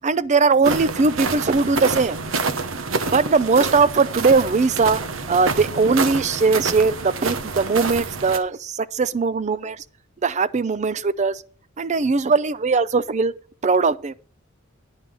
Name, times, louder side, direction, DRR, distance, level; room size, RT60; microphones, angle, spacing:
voice 1, 0.0-2.2 3.1-5.0 5.3-9.8 10.2-11.4 11.8-13.3 13.6-14.1, right 4 dB, 35° right, 0.5 m, -20 dB
sound 1, 0.6-8.4, right 4 dB, 75° right, 1.0 m, -27 dB
9.7 x 5.4 x 7.3 m
head